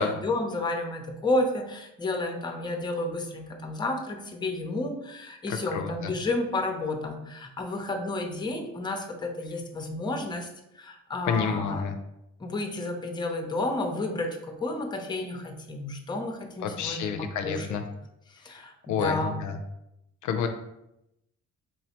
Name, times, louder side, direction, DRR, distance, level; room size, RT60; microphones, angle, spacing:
voice 1, 0.0-10.5 10.7-11.8 12.4-17.8 18.3-19.5, left 2 dB, 15° left, 4 dB, 0.6 m, -31 dB
voice 2, 5.5-5.9 11.3-12.0 16.6-17.8 18.9-19.6 20.2-20.5, left 6 dB, 75° left, 6 dB, 0.5 m, -29 dB
3.8 x 3.0 x 2.9 m, 0.85 s
cardioid pair, 90°, 30 cm